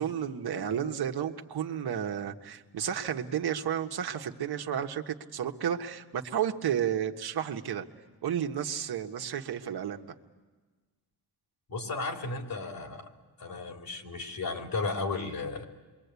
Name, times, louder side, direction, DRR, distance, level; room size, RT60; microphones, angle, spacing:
voice 1, 0.0-7.8 8.2-10.1, right 9 dB, 75° right, 3 dB, 1.5 m, -32 dB
voice 2, 11.7-13.1 13.4-15.6, left 3 dB, 60° left, 3 dB, 3.6 m, -34 dB
27.5 x 23.0 x 8.3 m, 1.3 s
wide cardioid pair, 125°, 39 cm